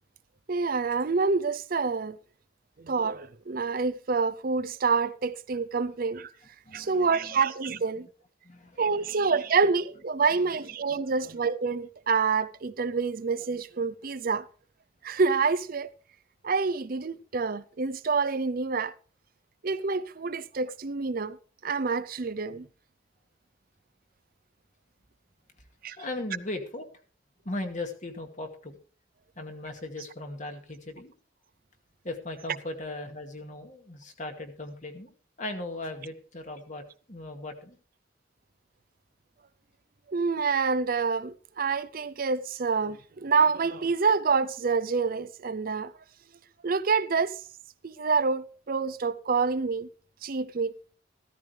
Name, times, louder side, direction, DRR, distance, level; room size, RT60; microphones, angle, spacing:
voice 1, 0.5-2.2 2.8-6.3 6.7-8.1 8.8-14.5 15.0-15.9 16.4-18.9 19.6-21.4 21.6-22.7 25.8-26.0 40.1-45.9 46.6-47.4 47.8-49.9 50.2-50.7, right 4 dB, 50° right, 0.6 m, -27 dB
voice 2, 6.7-7.3 8.4-9.1 26.0-26.9 27.4-28.8 29.4-31.1 32.0-35.1 35.4-37.8, left 2 dB, 45° left, 2.2 m, -38 dB
15.0 x 14.0 x 3.4 m
head